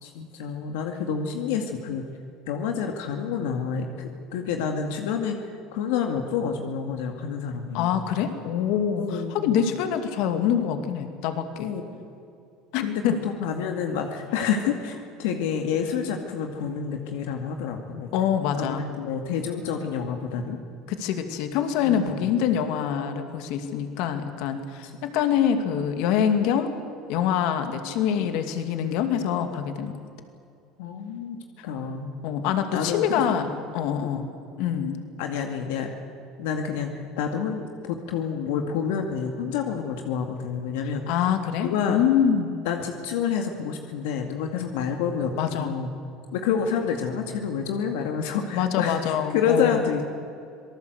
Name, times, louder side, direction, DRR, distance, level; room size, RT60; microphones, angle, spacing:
voice 1, 0.0-2.0 2.5-5.4 5.7-8.0 9.0-9.7 11.6-11.8 12.8-18.1 18.6-20.6 21.8-22.3 24.8-24.9 30.8-31.4 31.6-32.1 32.7-33.5 34.0-34.3 35.2-35.9 36.4-41.0 41.6-42.0 42.7-45.9 46.3-50.0, left 7 dB, 85° left, 4 dB, 2.1 m, -28 dB
voice 2, 7.7-11.7 12.7-13.1 18.1-18.8 20.9-26.7 27.1-29.9 32.2-33.5 33.7-34.3 34.6-35.0 41.1-42.6 45.4-45.7 48.5-49.8, left 8 dB, 70° left, 7 dB, 2.3 m, -25 dB
26.5 x 19.0 x 8.0 m, 2.5 s
supercardioid pair, 115°, 0 cm